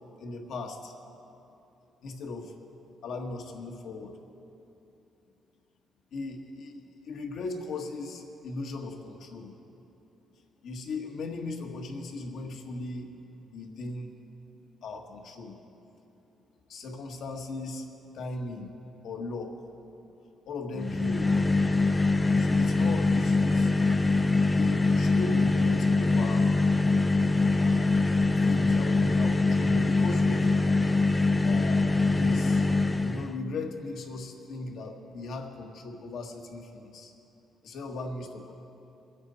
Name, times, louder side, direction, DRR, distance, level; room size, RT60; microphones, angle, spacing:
voice 1, 0.2-0.9 2.0-2.5 3.0-4.1 6.1-9.5 10.6-13.1 13.4-14.1 14.8-15.5 16.7-17.9 18.1-18.7 19.0-19.6 20.4-21.6 22.4-23.7 24.5-26.5 27.6-28.0 28.3-30.5 31.4-32.7 33.0-37.1 37.6-38.5, left 3 dB, 75° left, 2 dB, 1.6 m, -38 dB
sound 1, 20.8-33.4, left 3 dB, 20° left, 0.5 m, -23 dB
23.0 x 9.5 x 4.2 m, 2.9 s
cardioid pair, 90°, 0 cm